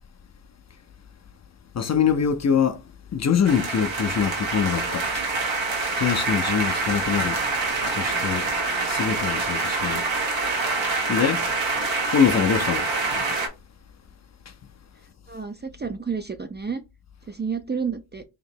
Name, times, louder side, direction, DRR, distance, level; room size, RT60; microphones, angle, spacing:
voice 1, 1.7-2.8 3.1-5.3 6.0-7.4 7.9-8.5 8.9-10.1 11.1-11.4 12.1-13.4, left 7 dB, 40° left, 0.4 m, -24 dB
sound 1, 3.5-13.5, right 3 dB, 90° right, 1.2 m, -26 dB
voice 2, 15.3-16.8 17.3-18.2, right 6 dB, 25° right, 0.3 m, -30 dB
3.0 x 2.7 x 4.3 m
cardioid pair, 90°, 45 cm